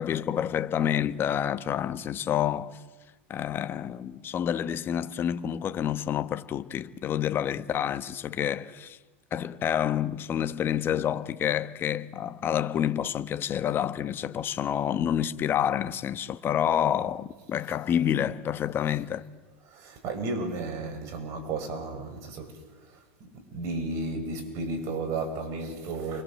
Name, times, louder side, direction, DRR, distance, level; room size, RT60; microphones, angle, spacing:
voice 1, 0.0-2.8 3.3-9.0 9.3-19.3, left 10 dB, 35° left, 1.3 m, -28 dB
voice 2, 19.7-26.2, right 3 dB, 50° right, 6.4 m, -34 dB
30.0 x 24.0 x 7.8 m
hypercardioid pair, 105°, 7 cm